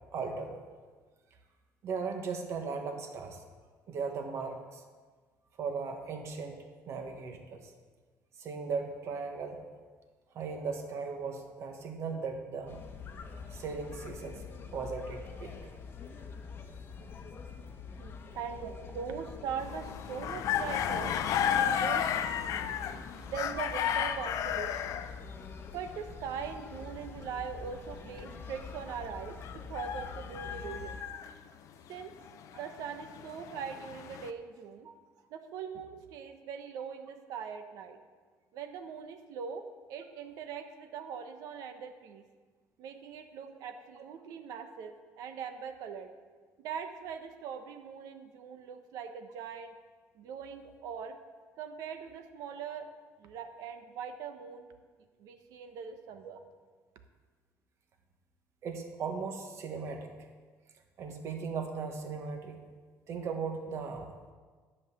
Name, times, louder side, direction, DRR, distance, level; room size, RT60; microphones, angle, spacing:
voice 1, 0.1-0.6 1.8-3.4 3.9-4.8 5.6-6.6 6.9-7.7 8.4-9.6 10.3-12.8 13.5-14.4 14.7-15.5 18.6-18.7 34.8-34.9 58.6-60.1 61.0-62.6 63.1-64.1, right 5 dB, 50° right, 4 dB, 1.3 m, -37 dB
sound 1, 12.7-31.0, left 5 dB, 40° left, 1.0 m, -46 dB
voice 2, 18.0-21.2 21.5-22.7 23.2-25.0 25.7-31.0 31.4-31.6 31.9-32.1 32.5-34.9 35.3-38.0 38.5-42.2 42.8-46.1 46.6-49.7 50.2-51.2 51.6-52.9 53.2-54.7 55.2-56.4, right 7 dB, 75° right, 7 dB, 0.9 m, -41 dB
sound 2, 19.6-25.2 29.4-31.4 32.2-34.3, left 9 dB, 60° left, 0.5 m, -33 dB
10.5 x 5.4 x 7.0 m, 1.5 s
cardioid pair, 135°, 6 cm